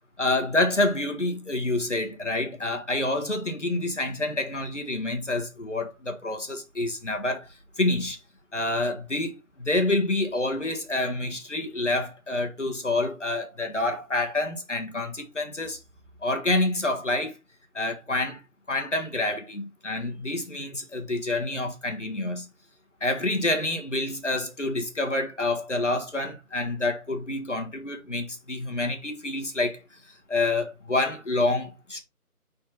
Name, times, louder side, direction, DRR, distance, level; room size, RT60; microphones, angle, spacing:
voice 1, 0.2-7.5 7.8-8.2 8.5-15.8 16.2-17.4 17.7-18.4 18.7-22.5 23.0-29.8 30.3-32.0, left 2 dB, 50° left, 1.5 m, -27 dB
5.4 x 4.3 x 4.1 m
figure-of-eight pair, 175°, 45 cm